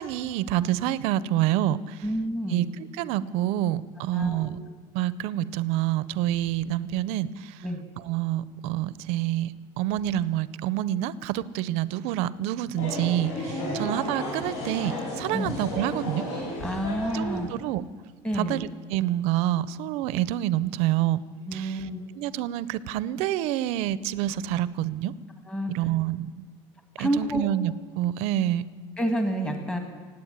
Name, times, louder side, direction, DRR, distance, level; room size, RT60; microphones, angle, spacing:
voice 1, 0.0-2.0 2.5-4.6 4.9-7.6 8.0-16.3 17.1-17.8 18.3-21.2 21.5-21.9 22.1-25.1 25.7-26.5 27.0-28.7, right 13 dB, 70° right, 18 dB, 0.6 m, -27 dB
voice 2, 2.0-2.7 4.1-4.6 7.6-7.8 13.6-13.8 15.3-15.5 16.6-17.5 18.2-18.6 21.5-22.0 25.5-25.7 27.0-27.4 29.0-29.8, right 1 dB, 10° left, 5 dB, 1.6 m, -29 dB
sound 1, 12.8-17.6, left 1 dB, 70° left, 5.6 m, -33 dB
17.0 x 8.8 x 8.9 m, 1.5 s
cardioid pair, 165°, 11 cm